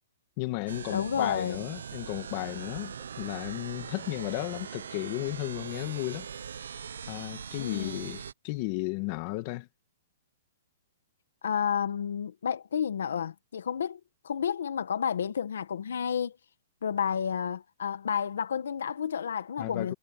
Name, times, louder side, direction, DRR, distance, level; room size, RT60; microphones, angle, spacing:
voice 1, 0.4-6.3 7.1-9.7 19.6-19.9, left 21 dB, 30° left, 1.8 m, -34 dB
sound 1, 0.7-8.3, right 7 dB, 85° right, 1.1 m, -41 dB
voice 2, 0.9-1.6 7.6-8.1 11.4-16.3 16.8-19.9, left 7 dB, 80° left, 1.5 m, -31 dB
hypercardioid pair, 170°, 0 cm